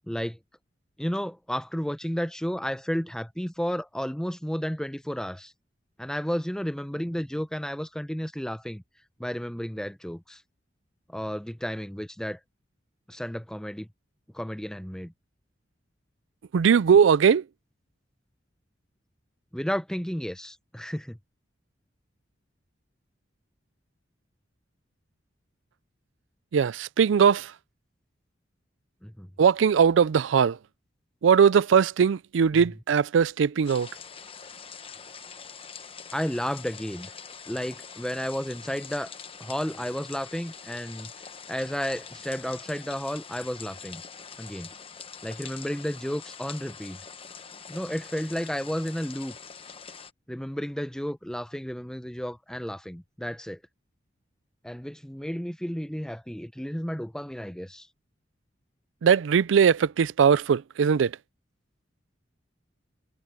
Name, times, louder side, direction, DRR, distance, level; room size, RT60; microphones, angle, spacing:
voice 1, 0.1-0.4 1.0-5.5 6.0-8.8 9.2-10.4 11.1-12.4 13.1-13.9 14.3-15.1 19.5-21.2 29.0-29.3 32.5-32.7 36.1-37.1 37.5-39.1 39.4-41.1 41.5-44.0 44.4-44.7 45.2-47.0 47.7-49.4 50.3-53.6 54.6-57.9, equal, 5° left, 0.8 m, -32 dB
voice 2, 16.5-17.4 26.5-27.5 29.4-30.6 31.2-33.9 59.0-61.1, right 7 dB, 85° right, 0.4 m, -20 dB
sound 1, 33.6-50.1, left 6 dB, 30° left, 1.0 m, -44 dB
head